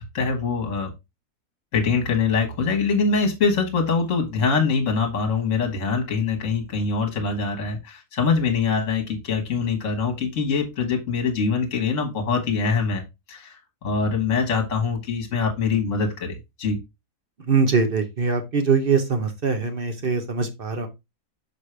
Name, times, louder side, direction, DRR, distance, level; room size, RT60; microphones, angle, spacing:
voice 1, 0.1-0.9 1.7-13.0 13.3-16.8, left 5 dB, 55° left, 2 dB, 1.6 m, -24 dB
voice 2, 17.4-20.9, right 5 dB, 45° right, 7 dB, 0.9 m, -22 dB
6.3 x 4.9 x 3.2 m, 0.22 s
omnidirectional pair, 1.7 m